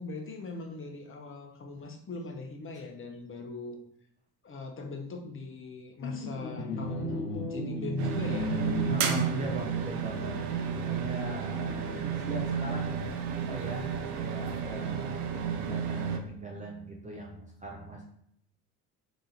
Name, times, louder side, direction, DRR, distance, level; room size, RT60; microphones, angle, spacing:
voice 1, 0.0-3.8 4.4-8.5, left 3 dB, 25° left, 2 dB, 0.9 m, -40 dB
sound 1, 6.0-12.3, left 1 dB, 75° left, 0.8 m, -36 dB
sound 2, 8.0-16.2, right 7 dB, 70° right, 0.7 m, -32 dB
voice 2, 8.9-10.4 10.8-12.9 13.5-18.0, right 2 dB, 15° right, -1 dB, 0.7 m, -40 dB
3.8 x 2.9 x 4.0 m, 0.72 s
figure-of-eight pair, 55°, 47 cm